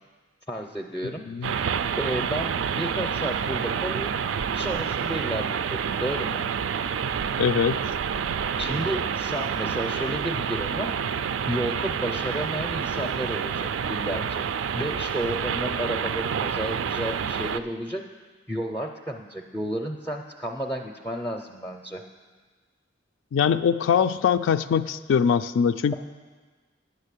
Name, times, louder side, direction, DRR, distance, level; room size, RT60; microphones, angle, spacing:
voice 1, 0.5-4.2 4.5-6.4 8.6-10.9 11.5-14.5 14.7-18.0 18.5-22.0, right 1 dB, 10° left, 2 dB, 0.5 m, -32 dB
voice 2, 1.0-1.5 7.4-7.8 23.3-26.0, left 7 dB, 80° left, 10 dB, 0.3 m, -22 dB
sound 1, 1.4-17.6, right 7 dB, 80° right, 0.4 m, -28 dB
9.2 x 6.4 x 8.2 m, 1.4 s
head